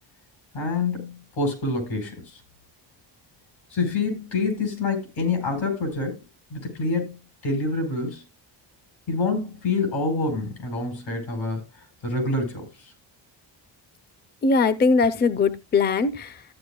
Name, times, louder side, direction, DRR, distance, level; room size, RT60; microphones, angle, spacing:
voice 1, 0.5-2.4 3.7-6.2 6.5-7.2 7.4-8.2 9.1-11.7 12.0-12.9, left 3 dB, 90° left, 4.7 m, -27 dB
voice 2, 14.4-16.4, left 4 dB, 25° left, 0.5 m, -21 dB
14.0 x 9.5 x 2.2 m
wide cardioid pair, 155°, 44 cm